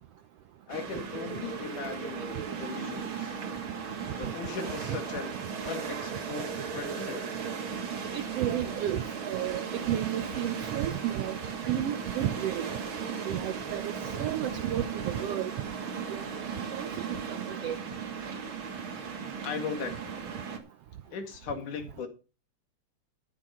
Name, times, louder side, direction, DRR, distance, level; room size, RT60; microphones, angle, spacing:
voice 1, 0.7-2.2 2.6-3.3 4.2-5.3 5.7-7.2 19.4-20.3 21.1-22.1, left 6 dB, 80° left, 3.5 m, -38 dB
sound 1, 0.7-20.6, right 6 dB, 45° right, 2.2 m, -36 dB
voice 2, 8.1-11.4 11.6-12.7 13.3-13.9 14.2-15.5 16.1-16.2 16.7-17.7, right 11 dB, 85° right, 1.3 m, -32 dB
13.5 x 8.7 x 4.2 m
omnidirectional pair, 3.6 m